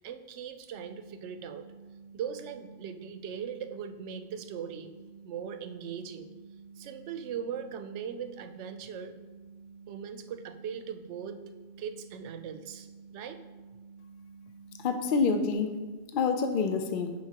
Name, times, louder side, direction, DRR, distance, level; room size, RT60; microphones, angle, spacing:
voice 1, 0.0-1.6 2.1-5.0 5.2-6.3 6.8-9.1 9.9-11.4 11.8-13.4, right 7 dB, 85° right, 8 dB, 0.9 m, -39 dB
sound 1, 0.7-15.5, right 5 dB, 45° left, 2.5 m, -51 dB
voice 2, 14.8-15.8 16.1-17.1, left 5 dB, 60° left, 6 dB, 0.6 m, -27 dB
10.5 x 4.6 x 2.9 m, 1.3 s
omnidirectional pair, 1.2 m